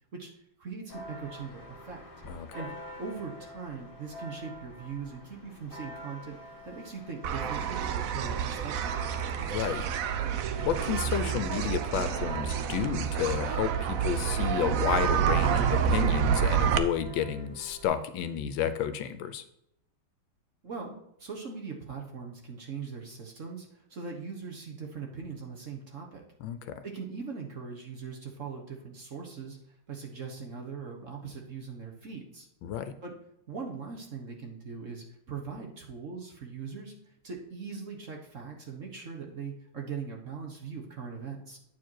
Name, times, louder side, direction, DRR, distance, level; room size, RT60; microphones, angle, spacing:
voice 1, 0.6-2.0 2.5-2.7 3.0-6.4 6.7-9.1 20.6-26.2 26.8-29.6 29.9-32.5 33.0-33.1 33.5-36.9 37.2-41.6, right 5 dB, 40° right, 1 dB, 1.4 m, -40 dB
Church bell, 0.9-17.9, equal, 30° left, 1.6 m, -47 dB
sound 1, 7.2-16.8, right 8 dB, 80° right, 0.7 m, -28 dB
voice 2, 9.4-9.9 10.6-19.4 26.4-26.7 32.6-32.9, left 9 dB, 75° left, 10 dB, 1.3 m, -31 dB
8.9 x 4.6 x 4.5 m, 0.80 s
omnidirectional pair, 2.3 m